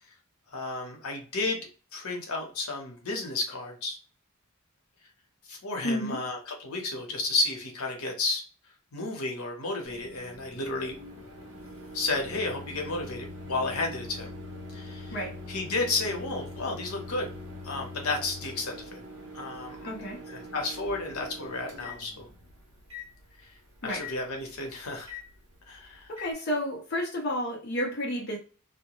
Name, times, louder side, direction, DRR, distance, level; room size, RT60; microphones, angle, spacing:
voice 1, 0.5-4.0 5.5-8.4 8.9-10.9 11.9-14.4 14.7-15.1 15.5-17.3 17.6-19.0 19.3-19.8 20.3-22.3 23.8-25.2 25.7-26.1, left 3 dB, 85° left, 1 dB, 0.8 m, -32 dB
voice 2, 5.8-6.2 15.1-15.4 19.8-20.2 23.8-24.0 25.8-28.4, equal, 45° left, -1 dB, 0.5 m, -31 dB
Microwave oven, 9.8-26.3, left 2 dB, 55° right, 0.8 m, -43 dB
2.2 x 2.1 x 2.9 m, 0.37 s
head